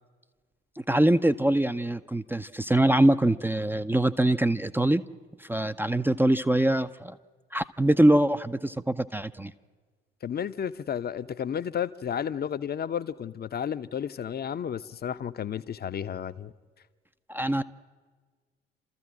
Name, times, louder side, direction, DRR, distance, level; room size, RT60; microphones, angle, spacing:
voice 1, 0.9-5.0 5.4-7.2 7.5-9.5 17.3-17.6, right 1 dB, 5° right, 0.6 m, -23 dB
voice 2, 10.2-16.5, left 8 dB, 30° left, 0.8 m, -32 dB
29.5 x 14.0 x 7.4 m
figure-of-eight pair, 45°, 30 cm